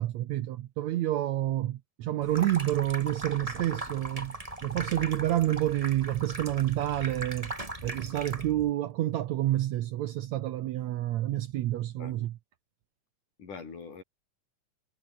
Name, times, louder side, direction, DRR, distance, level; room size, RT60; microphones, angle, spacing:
voice 1, 0.0-7.5 7.8-12.4, right 14 dB, 70° right, 2.0 m, -29 dB
Water tap faucet / Sink (filling or washing), 2.2-8.7, right 1 dB, 10° right, 3.3 m, -39 dB
voice 2, 13.4-14.0, left 5 dB, 75° left, 6.6 m, -44 dB
omnidirectional pair, 3.7 m